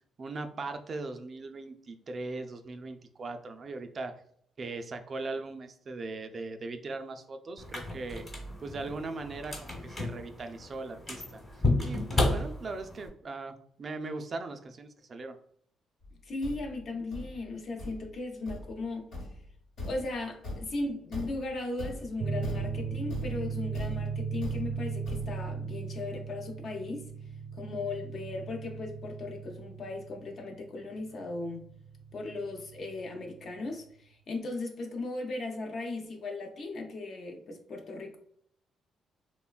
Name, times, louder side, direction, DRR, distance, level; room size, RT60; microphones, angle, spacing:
voice 1, 0.2-4.2 4.6-8.2 8.6-11.4 11.8-15.4, right 3 dB, 45° right, 6 dB, 0.3 m, -39 dB
sound 1, 7.6-13.1, left 2 dB, 30° left, 1.1 m, -32 dB
Thump thud, 16.0-25.6, left 1 dB, 80° left, 1.2 m, -42 dB
voice 2, 16.2-19.1 19.8-27.1 27.5-31.7 32.1-38.2, left 2 dB, 55° left, 3 dB, 0.6 m, -37 dB
sound 2, 22.2-33.4, right 5 dB, 85° right, 0.6 m, -37 dB
3.1 x 2.1 x 2.3 m, 0.66 s
cardioid pair, 90°, 0 cm